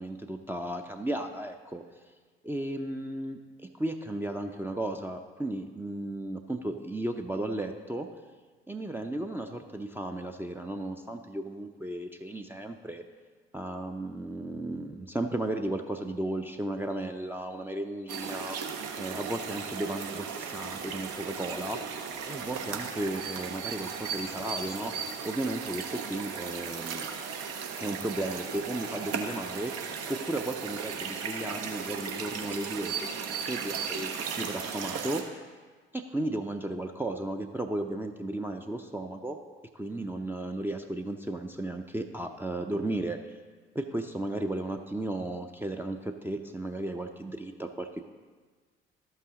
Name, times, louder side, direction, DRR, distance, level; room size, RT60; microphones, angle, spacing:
voice 1, 0.0-1.8 2.4-8.1 8.7-13.0 13.5-21.8 22.2-24.9 25.2-27.1 27.8-35.2 35.9-39.4 39.7-43.4 43.7-48.1, right 1 dB, 5° right, 3 dB, 0.6 m, -35 dB
sound 1, 18.1-35.2, right 6 dB, 60° right, 1.0 m, -36 dB
13.0 x 5.6 x 3.7 m, 1.4 s
figure-of-eight pair, 50°, 29 cm